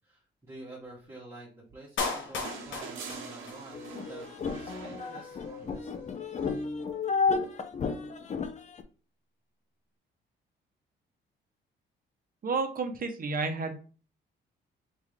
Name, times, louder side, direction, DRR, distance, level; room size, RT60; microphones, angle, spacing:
voice 1, 0.0-4.2 4.6-5.9, right 2 dB, 15° right, -9 dB, 2.0 m, -48 dB
Clapping, 2.0-4.0 4.2-4.3, left 4 dB, 75° left, 1.3 m, -35 dB
sound 1, 2.4-5.8 7.3-7.4, right 5 dB, 85° right, 1.0 m, -44 dB
sound 2, 3.7-8.8, left 4 dB, 35° left, 0.6 m, -32 dB
voice 2, 12.4-13.7, right 4 dB, 45° right, 6 dB, 1.1 m, -31 dB
3.9 x 3.6 x 3.4 m, 0.37 s
cardioid pair, 90°, 20 cm